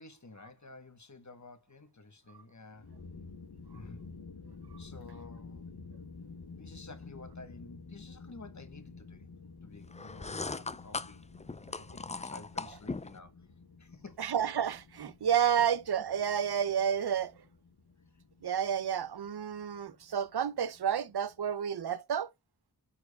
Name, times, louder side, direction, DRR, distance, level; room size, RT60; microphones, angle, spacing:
voice 1, 0.0-2.9 3.7-4.1 4.8-5.7 6.5-9.2 9.6-11.2 11.7-13.5 13.8-14.2 15.4-15.7, left 3 dB, 50° left, 1.1 m, -52 dB
sound 1, 2.7-21.5, left 4 dB, 90° left, 0.9 m, -51 dB
sound 2, 9.9-13.2, left 3 dB, 20° left, 0.4 m, -39 dB
voice 2, 14.2-17.3 18.4-22.3, right 8 dB, 90° right, 0.6 m, -30 dB
9.8 x 4.6 x 2.2 m
wide cardioid pair, 55°, 38 cm